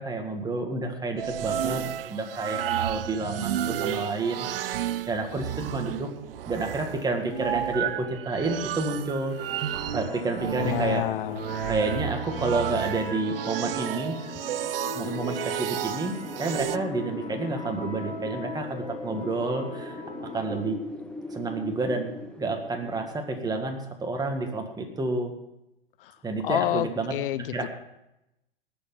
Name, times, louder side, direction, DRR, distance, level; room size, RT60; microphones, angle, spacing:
voice 1, 0.0-6.1 6.5-9.4 9.9-11.1 11.7-14.3 14.9-20.8 21.3-25.4 26.2-27.2 27.5-27.7, right 3 dB, 15° right, 4 dB, 1.9 m, -30 dB
sound 1, 1.2-16.8, right 11 dB, 75° right, 0.7 m, -32 dB
sound 2, 9.4-20.6, left 3 dB, 90° left, 3.1 m, -40 dB
voice 2, 10.6-11.4 26.0-26.2 26.4-27.5, left 13 dB, 65° left, 16 dB, 0.6 m, -28 dB
Wind, 15.9-24.6, left 1 dB, 5° left, 1.0 m, -41 dB
19.0 x 7.1 x 5.6 m, 0.88 s
hypercardioid pair, 110°, 29 cm